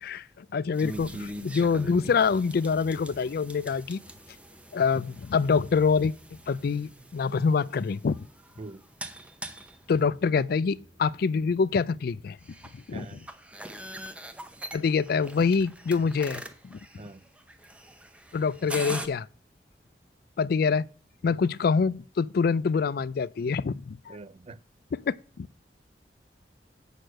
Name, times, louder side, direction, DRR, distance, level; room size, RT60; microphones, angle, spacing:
voice 1, 0.0-4.0 4.7-8.3 9.9-12.4 12.7-13.2 14.7-16.8 18.3-19.3 20.4-20.8 21.2-24.2 25.1-25.5, left 5 dB, 60° left, 0.4 m, -26 dB
sound 1, 0.7-19.1, right 1 dB, 5° right, 0.8 m, -43 dB
voice 2, 12.9-13.3 17.0-17.3 24.1-24.6, right 3 dB, 35° right, 0.4 m, -44 dB
7.8 x 6.6 x 6.3 m
head